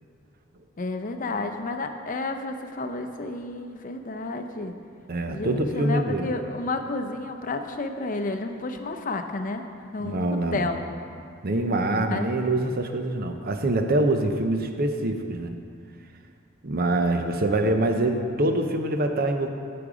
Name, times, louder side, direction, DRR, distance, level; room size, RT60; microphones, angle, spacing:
voice 1, 0.8-4.8 5.3-9.7 9.9-10.2 10.5-10.8 11.8-12.3, left 3 dB, 40° left, 6 dB, 0.6 m, -31 dB
voice 2, 5.1-6.3 10.0-10.6 11.4-15.5 16.6-19.5, right 2 dB, 45° right, 6 dB, 0.7 m, -25 dB
8.7 x 8.7 x 4.9 m, 2.4 s
head